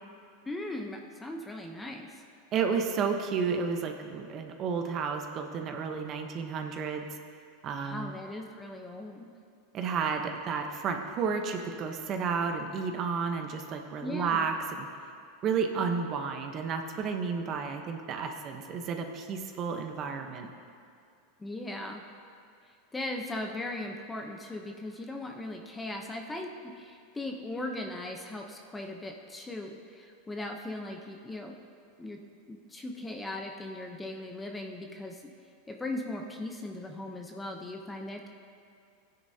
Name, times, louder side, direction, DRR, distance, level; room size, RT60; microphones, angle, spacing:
voice 1, 0.5-2.2 7.8-9.3 14.0-14.4 21.4-22.0 22.9-26.5 26.8-31.5 32.0-32.2 32.5-35.2 35.7-38.3, left 2 dB, 10° left, 2 dB, 0.8 m, -38 dB
voice 2, 2.5-7.1 7.6-8.2 9.7-14.9 15.4-20.5, right 5 dB, 35° right, 4 dB, 1.0 m, -32 dB
16.0 x 9.7 x 2.8 m, 2.4 s
supercardioid pair, 135°, 0 cm